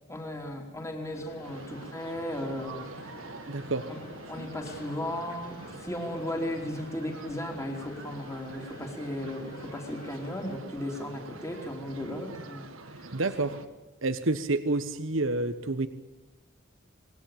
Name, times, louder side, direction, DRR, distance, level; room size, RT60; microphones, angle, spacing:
voice 1, 0.1-3.3 3.9-4.0 4.3-13.1 13.4-13.5, left 1 dB, 15° left, 2 dB, 3.5 m, -36 dB
Mechanisms, 1.1-10.6, left 2 dB, 45° left, 6.4 m, -51 dB
sound 1, 1.4-13.7, right 2 dB, 90° right, 2.3 m, -45 dB
voice 2, 3.5-3.9 13.1-13.6 14.0-15.9, right 2 dB, 75° right, 10 dB, 1.2 m, -28 dB
27.5 x 20.5 x 8.7 m, 1.1 s
head